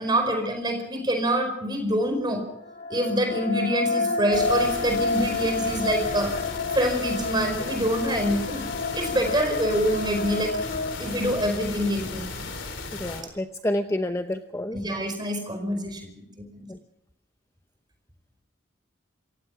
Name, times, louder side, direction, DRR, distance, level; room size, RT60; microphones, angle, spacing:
voice 1, 0.0-2.4 2.9-6.3 6.7-8.6 8.9-10.6 11.0-12.2 14.7-16.7, equal, 20° right, 4 dB, 5.1 m, -26 dB
sound 1, 2.6-11.8, left 3 dB, 45° left, 1.6 m, -30 dB
sound 2, 4.3-13.2, left 3 dB, 70° left, 3.5 m, -36 dB
voice 2, 12.9-14.8 16.7-16.8, left 1 dB, 15° left, 7 dB, 0.7 m, -29 dB
27.0 x 16.0 x 6.1 m, 0.81 s
head